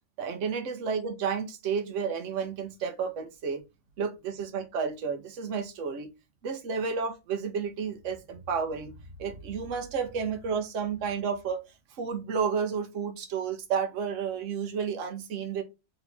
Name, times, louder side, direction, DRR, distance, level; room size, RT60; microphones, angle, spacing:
voice 1, 0.2-3.6 4.0-6.1 6.4-8.9 9.2-11.6 11.9-15.6, right 6 dB, 80° right, 1.1 m, -31 dB
3.1 x 2.8 x 4.1 m
omnidirectional pair, 1.3 m